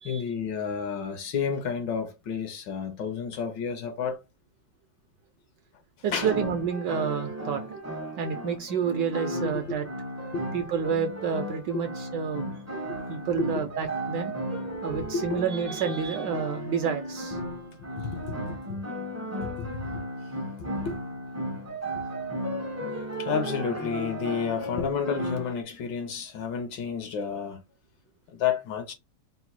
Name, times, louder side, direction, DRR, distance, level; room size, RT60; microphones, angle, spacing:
voice 1, 0.0-4.2 6.1-6.3 9.4-9.8 10.3-10.5 11.7-11.8 12.9-13.0 13.4-13.5 14.9-15.4 18.0-18.8 19.4-20.0 20.6-21.0 23.2-27.6 28.3-28.9, left 6 dB, 70° left, 1.2 m, -31 dB
voice 2, 6.0-7.8 8.2-9.9 10.5-12.5 13.1-14.3 14.8-17.4, right 7 dB, 75° right, 1.1 m, -29 dB
sound 1, 6.2-25.6, equal, 25° right, 0.3 m, -35 dB
4.0 x 2.1 x 4.3 m
omnidirectional pair, 2.3 m